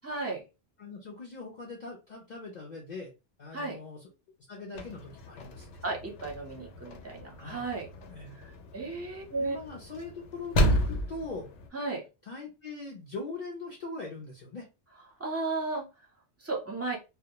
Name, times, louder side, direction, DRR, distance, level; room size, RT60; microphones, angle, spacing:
voice 1, 0.0-0.4 3.5-3.8 5.8-7.9 8.7-9.6 11.7-12.0 15.2-15.9 16.4-17.0, right 3 dB, 20° right, -1 dB, 0.5 m, -34 dB
voice 2, 0.8-3.1 3.4-4.1 4.5-5.7 7.4-7.7 8.1-8.4 9.4-11.5 12.2-14.7, left 3 dB, 50° left, -2 dB, 0.6 m, -41 dB
sound 1, 4.7-11.7, equal, 85° left, 0.9 m, -33 dB
2.2 x 2.1 x 2.8 m, 0.27 s
omnidirectional pair, 1.2 m